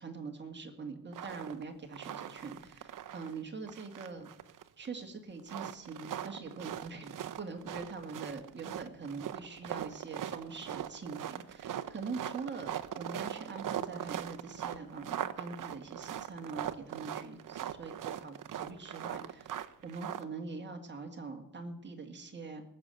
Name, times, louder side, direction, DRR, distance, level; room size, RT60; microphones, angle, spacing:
voice 1, 0.0-4.3 4.8-19.5 19.8-22.6, right 4 dB, 25° right, 4 dB, 2.0 m, -43 dB
sound 1, 1.1-1.6 1.9-3.4 3.7-4.9 5.4-20.2, right 10 dB, 50° right, 0.8 m, -40 dB
19.0 x 6.9 x 7.8 m, 0.75 s
wide cardioid pair, 155°, 41 cm